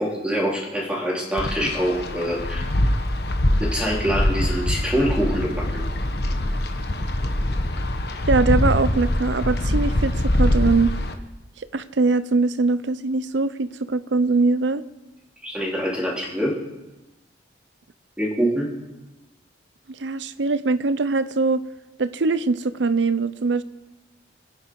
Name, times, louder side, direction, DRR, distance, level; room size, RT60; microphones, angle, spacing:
voice 1, 0.0-2.9 3.6-5.8 15.4-16.6 18.2-18.7, equal, 5° right, -4 dB, 3.9 m, -25 dB
Wind, 1.4-11.1, left 1 dB, 60° left, 1.3 m, -23 dB
voice 2, 8.3-10.9 11.7-14.8 20.0-21.6 22.0-23.6, right 3 dB, 80° right, 15 dB, 0.7 m, -22 dB
27.0 x 10.0 x 4.8 m, 1.0 s
head